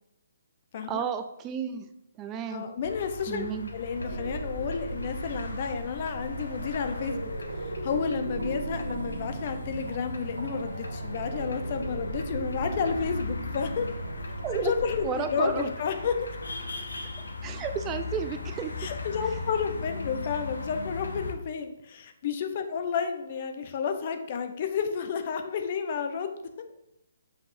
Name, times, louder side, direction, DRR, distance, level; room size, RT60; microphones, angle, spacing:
voice 1, 0.9-1.9 2.2-2.6 3.3-3.7 14.4-14.7 15.0-15.7 17.4-18.7, right 7 dB, 20° right, 8 dB, 0.4 m, -32 dB
voice 2, 2.5-3.5 3.7-7.3 7.6-13.9 14.5-16.3 18.8-26.3, left 6 dB, 45° left, 7 dB, 0.8 m, -31 dB
sound 1, 2.8-21.3, left 3 dB, 75° left, 0.9 m, -39 dB
sound 2, 4.0-15.1, right 2 dB, 80° right, 0.6 m, -36 dB
7.4 x 5.3 x 2.7 m, 0.86 s
figure-of-eight pair, 135°, 0 cm